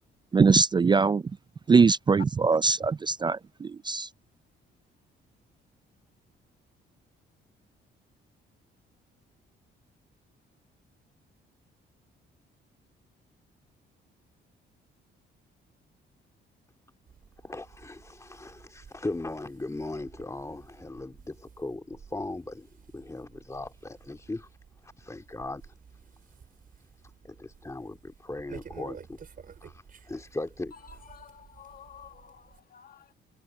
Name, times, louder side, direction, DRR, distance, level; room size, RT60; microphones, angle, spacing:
voice 1, 0.3-1.2 1.7-4.1, right 4 dB, 25° right, 0.4 m, -22 dB
sound 1, 17.1-32.6, right 6 dB, 45° right, 5.0 m, -52 dB
voice 2, 17.4-24.5 24.8-25.7 27.2-29.2 29.6-31.0, left 2 dB, 15° left, 2.7 m, -38 dB
voice 3, 30.9-33.1, left 8 dB, 45° left, 1.7 m, -51 dB
cardioid pair, 90°, 20 cm